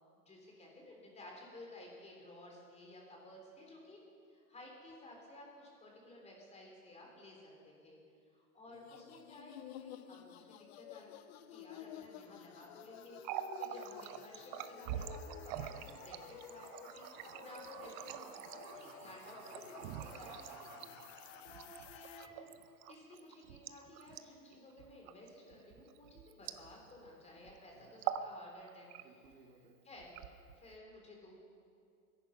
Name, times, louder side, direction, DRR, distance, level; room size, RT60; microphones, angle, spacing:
voice 1, 0.1-4.0 4.3-8.0 8.3-11.2 11.5-13.2 13.6-17.1 17.4-20.3 21.4-22.5 22.9-28.9 29.8-30.2 30.5-31.3, left 1 dB, 15° left, -1 dB, 3.5 m, -55 dB
sound 1, 8.7-22.3, left 12 dB, 45° left, 0.6 m, -53 dB
Water tap faucet, 13.1-27.1 27.4-27.6 27.9-28.3 28.7-29.3 30.0-30.8, right 11 dB, 30° right, 0.5 m, -45 dB
voice 2, 18.7-19.7 20.3-21.0 27.7-28.0 29.0-29.8, right 3 dB, 90° right, 2 dB, 2.7 m, -63 dB
23.0 x 10.5 x 5.7 m, 2.4 s
hypercardioid pair, 140°, 47 cm